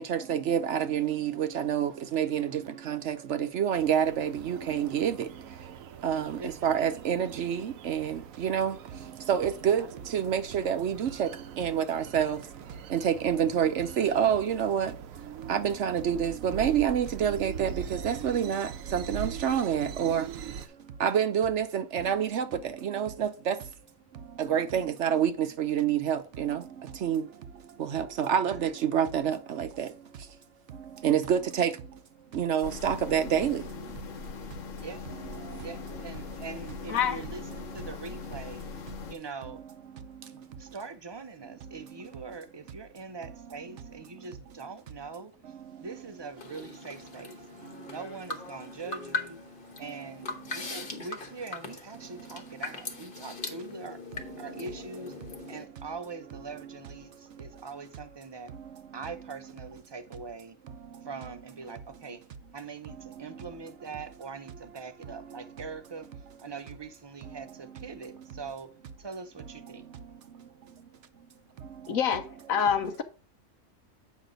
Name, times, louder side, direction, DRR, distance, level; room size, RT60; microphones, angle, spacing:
voice 1, 0.0-5.3 6.0-8.7 9.3-9.8 10.1-11.3 11.6-12.4 12.9-14.9 15.5-20.3 21.0-23.6 24.4-26.6 27.0-27.2 27.8-29.9 31.0-31.7 32.3-33.6, right 8 dB, 65° right, 0.9 m, -27 dB
sound 1, 3.7-20.7, right 8 dB, 85° right, 1.1 m, -42 dB
voice 2, 6.1-6.7 9.7-10.0 28.4-28.6 34.8-35.1 35.6-38.6 39.1-39.6 40.3-45.3 45.8-47.4 47.9-49.4 49.8-54.0 54.4-55.1 55.5-58.5 58.9-60.6 61.0-62.2 62.5-66.1 66.4-68.7 69.0-69.8, right 4 dB, 30° right, 0.5 m, -42 dB
sound 2, 32.6-39.2, left 4 dB, 70° left, 1.2 m, -41 dB
sound 3, 46.4-55.6, left 3 dB, 40° left, 1.3 m, -40 dB
voice 3, 71.9-73.0, left 7 dB, 85° left, 1.4 m, -27 dB
8.3 x 5.6 x 3.8 m
omnidirectional pair, 1.4 m